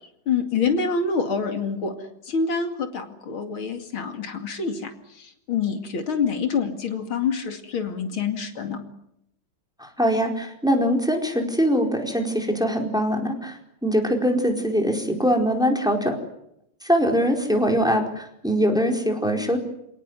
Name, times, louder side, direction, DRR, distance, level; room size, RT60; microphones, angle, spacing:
voice 1, 0.3-2.0 2.2-8.8, left 5 dB, 80° left, 6 dB, 3.2 m, -26 dB
voice 2, 9.8-16.2 16.8-19.6, equal, ahead, 2 dB, 4.5 m, -22 dB
28.5 x 18.5 x 9.5 m, 0.79 s
omnidirectional pair, 2.2 m